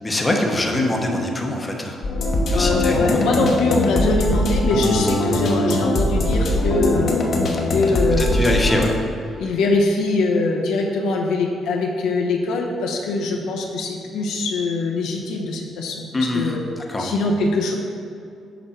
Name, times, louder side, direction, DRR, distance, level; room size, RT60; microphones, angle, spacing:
voice 1, 0.0-1.9 2.3-3.2 7.9-8.9 16.1-16.6 16.9-17.1, left 1 dB, 20° left, 0 dB, 0.9 m, -23 dB
sound 1, 2.0-8.8, left 1 dB, 55° left, 1.0 m, -21 dB
voice 2, 2.5-7.1 7.7-8.5 8.8-8.9 9.4-16.6 17.0-17.7, left 3 dB, 85° left, 0 dB, 0.9 m, -22 dB
7.0 x 5.2 x 4.3 m, 2.4 s
cardioid pair, 90°, 0 cm